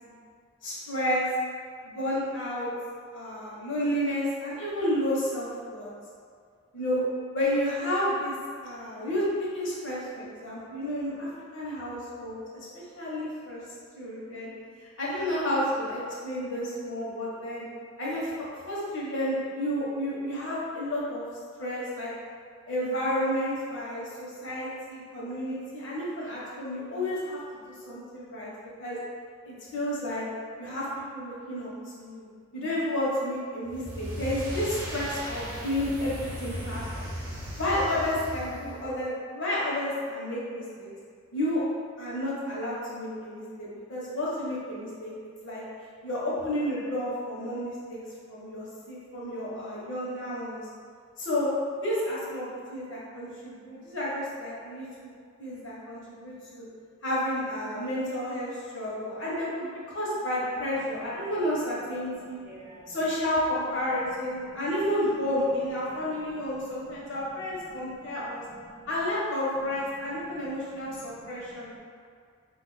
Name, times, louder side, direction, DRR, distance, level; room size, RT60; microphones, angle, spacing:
voice 1, 0.6-1.2 1.8-2.7 3.1-5.9 6.7-7.0 7.3-8.3 8.6-13.6 14.0-14.5 14.8-17.6 18.0-21.2 21.6-22.1 22.7-28.5 28.8-29.0 29.4-30.2 30.6-30.9 31.1-32.2 32.5-37.1 37.6-40.9 41.3-41.6 42.0-45.1 45.4-45.6 46.0-48.0 48.3-50.7 51.2-51.5 51.8-55.1 55.4-56.7 57.0-62.4 62.9-68.4 68.9-71.7, left 1 dB, 55° left, -7 dB, 0.9 m, -31 dB
sound 1, 33.6-39.0, equal, 70° right, 0.7 m, -37 dB
voice 2, 62.0-63.0 64.3-64.7 65.9-68.9 69.6-69.7 70.0-71.8, right 1 dB, 10° right, -7 dB, 0.3 m, -53 dB
2.4 x 2.4 x 3.9 m, 2.1 s
head